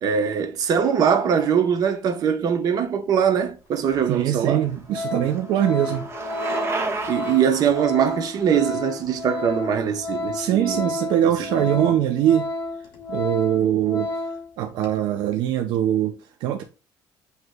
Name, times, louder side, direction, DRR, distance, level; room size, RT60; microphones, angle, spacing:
voice 1, 0.0-4.6 7.1-10.9 11.5-11.9, right 7 dB, 55° right, 0.9 m, -22 dB
Organ, 3.9-4.0 4.5-4.6 4.9-14.5 14.8-15.0, left 2 dB, 70° left, 1.4 m, -31 dB
Bicycle, 4.1-10.1, right 3 dB, 35° right, 1.2 m, -33 dB
voice 2, 4.1-6.1 10.3-12.5 13.1-14.1 14.6-16.6, right 11 dB, 80° right, 0.5 m, -22 dB
8.0 x 2.9 x 2.2 m
cardioid pair, 125°, 8 cm